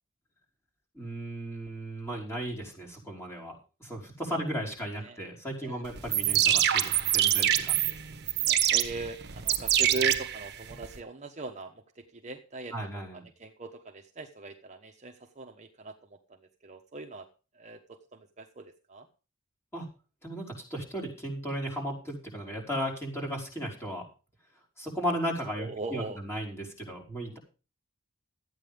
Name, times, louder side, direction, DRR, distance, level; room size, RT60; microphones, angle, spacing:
voice 1, 0.9-3.5 3.8-8.0 12.7-13.2 19.7-19.9 20.2-24.0 24.8-27.4, equal, 10° left, -2 dB, 5.2 m, -35 dB
sound 1, 6.0-11.0, right 11 dB, 50° right, 1.4 m, -26 dB
voice 2, 8.4-12.7 13.1-17.3 17.5-19.1 25.6-26.2, right 3 dB, 35° right, 4 dB, 1.2 m, -40 dB
13.5 x 9.0 x 5.3 m, 0.33 s
head